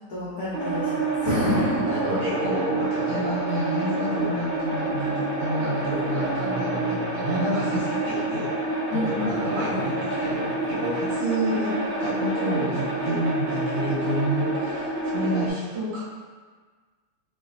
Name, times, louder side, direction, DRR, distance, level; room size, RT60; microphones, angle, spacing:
voice 1, 0.1-1.9 8.9-9.6, left 1 dB, 70° left, -9 dB, 0.8 m, -28 dB
sound 1, 0.5-15.5, right 2 dB, 75° right, 1.6 m, -28 dB
voice 2, 1.8-8.5 8.9-16.0, right 1 dB, 55° right, -10 dB, 1.7 m, -29 dB
3.2 x 3.2 x 2.4 m, 1.5 s
omnidirectional pair, 2.4 m